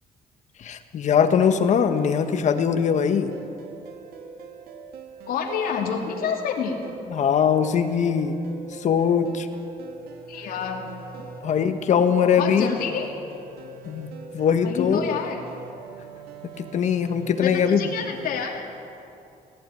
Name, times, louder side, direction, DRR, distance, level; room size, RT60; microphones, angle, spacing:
voice 1, 0.6-3.3 7.1-8.4 8.7-9.5 11.4-12.7 13.8-14.1 14.3-15.2 16.4-17.9, left 7 dB, 50° left, 8 dB, 1.4 m, -21 dB
sound 1, 1.2-18.4, right 4 dB, 85° right, 2.2 m, -43 dB
voice 2, 5.3-6.8 10.3-10.8 11.3-11.5 12.4-13.1 14.6-15.4 17.4-18.7, left 6 dB, 75° left, 0 dB, 2.7 m, -28 dB
17.5 x 17.5 x 9.4 m, 2.8 s
cardioid pair, 150°, 15 cm